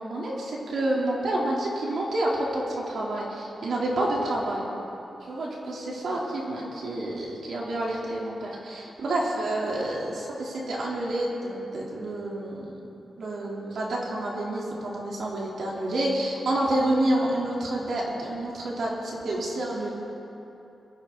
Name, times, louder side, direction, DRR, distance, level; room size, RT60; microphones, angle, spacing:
voice 1, 0.0-4.6 5.3-12.8 13.2-19.9, right 1 dB, 75° right, -4 dB, 3.4 m, -29 dB
22.5 x 15.5 x 4.0 m, 2.9 s
cardioid pair, 90°, 0 cm